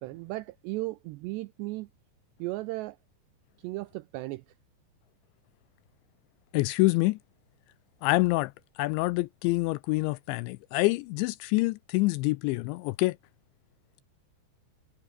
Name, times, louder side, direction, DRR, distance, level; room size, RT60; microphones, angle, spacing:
voice 1, 0.0-1.9 2.4-3.0 3.6-4.4, right 20 dB, 85° right, 2.4 m, -35 dB
voice 2, 6.5-7.2 8.0-8.5 8.8-13.2, left 22 dB, 85° left, 2.7 m, -26 dB
omnidirectional pair, 5.6 m